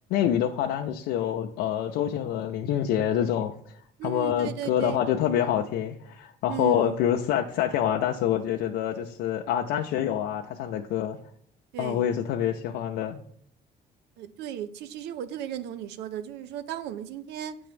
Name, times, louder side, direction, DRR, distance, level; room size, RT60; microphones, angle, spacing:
voice 1, 0.1-3.5 4.0-11.2 11.8-13.2, left 10 dB, 90° left, 0.6 m, -26 dB
voice 2, 4.0-5.0 6.5-7.0 11.7-12.1 14.2-17.6, right 10 dB, 85° right, 0.5 m, -35 dB
7.8 x 3.5 x 5.1 m
cardioid pair, 110°, 17 cm